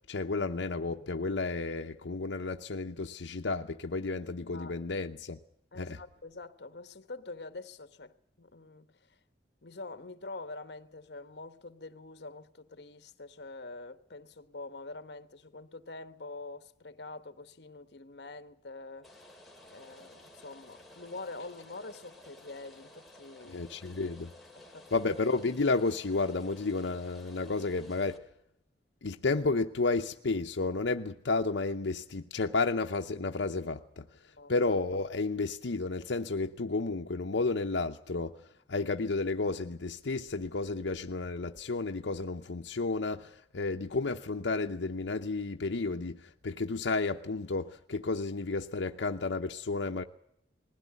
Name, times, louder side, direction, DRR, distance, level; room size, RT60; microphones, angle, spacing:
voice 1, 0.0-5.4 5.7-6.0 23.4-24.3 24.9-28.3 29.0-50.0, left 3 dB, 85° left, 0.8 m, -32 dB
voice 2, 5.7-9.1 9.6-19.1 19.7-23.6 24.6-25.0 34.4-34.5, left 3 dB, 65° left, 1.1 m, -45 dB
Rain, 19.0-28.2, left 1 dB, ahead, 2.4 m, -54 dB
20.5 x 16.5 x 9.6 m
head